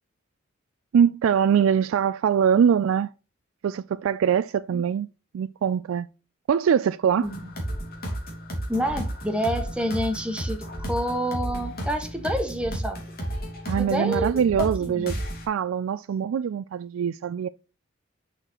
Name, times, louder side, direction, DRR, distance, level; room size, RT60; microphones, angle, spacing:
voice 1, 0.9-3.1 3.6-5.1 5.3-6.1 6.5-7.3 13.7-15.2 15.5-17.5, right 8 dB, 80° right, 0.3 m, -23 dB
sound 1, 7.2-15.4, right 1 dB, 50° left, 2.6 m, -32 dB
voice 2, 8.7-10.6 10.9-13.0 13.8-15.1, equal, 5° right, 1.4 m, -28 dB
6.6 x 5.8 x 2.9 m
head